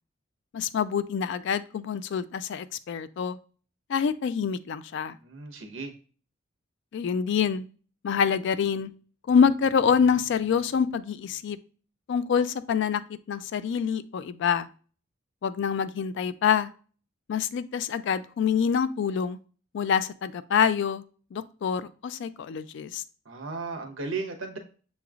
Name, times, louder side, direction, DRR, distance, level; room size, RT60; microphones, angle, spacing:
voice 1, 0.5-3.4 3.9-5.2 6.9-7.7 8.0-8.9 9.3-11.6 12.1-13.0 13.3-14.7 15.4-16.7 17.3-19.4 19.7-21.0 21.3-23.0, left 7 dB, 60° left, 15 dB, 0.3 m, -26 dB
voice 2, 5.2-5.9 23.2-24.6, right 4 dB, 70° right, 4 dB, 1.0 m, -35 dB
6.8 x 3.1 x 2.4 m, 0.39 s
head